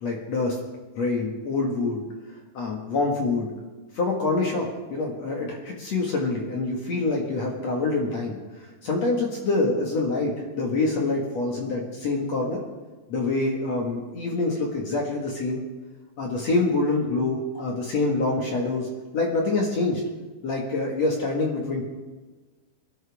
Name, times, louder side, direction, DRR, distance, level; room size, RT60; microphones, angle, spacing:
voice 1, 0.0-0.6 1.0-2.0 2.5-3.5 4.0-8.4 8.8-12.6 13.1-15.6 16.2-18.9 19.1-20.0 20.4-21.9, left 3 dB, 50° left, -1 dB, 2.1 m, -26 dB
24.5 x 11.5 x 3.6 m, 1.3 s
omnidirectional pair, 5.5 m